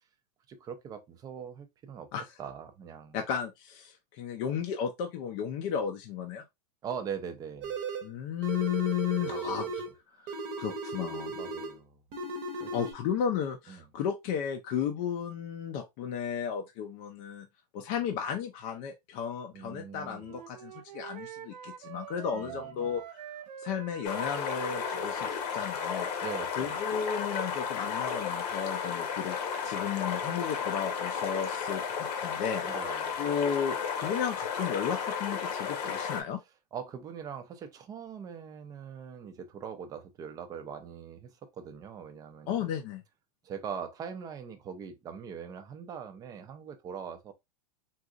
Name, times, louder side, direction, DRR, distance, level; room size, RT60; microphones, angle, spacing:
voice 1, 0.5-2.1 2.4-3.2 6.8-7.7 9.2-9.5 10.1-10.4 10.7-10.8 11.3-12.0 12.6-12.8 13.7-13.8 19.5-20.3 22.3-22.9 26.2-26.8 32.6-33.1 36.7-42.7 43.4-47.3, right 7 dB, 20° right, 0.4 m, -42 dB
voice 2, 3.1-6.4 8.0-9.8 10.2-11.4 12.7-17.5 17.7-23.3 23.6-26.1 26.5-29.4 29.6-32.6 33.2-36.4 42.5-43.0, left 8 dB, 40° left, 0.5 m, -34 dB
sound 1, 7.6-8.1 8.4-9.9 10.3-11.8 12.1-12.9, right 2 dB, 40° right, 0.8 m, -36 dB
Wind instrument woodwind instrument, 20.2-25.4, right 10 dB, 75° right, 0.6 m, -45 dB
sound 2, 24.0-36.2, left 7 dB, 75° left, 1.0 m, -33 dB
3.8 x 2.4 x 2.4 m
supercardioid pair, 150°, 21 cm